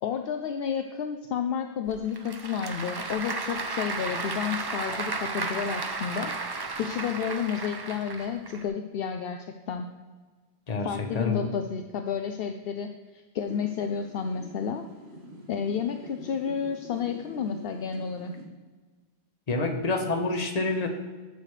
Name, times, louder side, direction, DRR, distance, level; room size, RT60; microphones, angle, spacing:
voice 1, 0.0-9.9 10.8-14.8 15.5-18.3, left 7 dB, 70° left, 6 dB, 0.7 m, -31 dB
Applause / Crowd, 1.9-8.6, right 3 dB, 30° right, 0.5 m, -34 dB
voice 2, 10.7-11.5 19.5-20.9, left 3 dB, 40° left, 4 dB, 1.1 m, -28 dB
sound 1, 13.4-18.4, right 1 dB, 80° right, 1.7 m, -44 dB
12.5 x 6.5 x 3.3 m, 1.4 s
omnidirectional pair, 1.1 m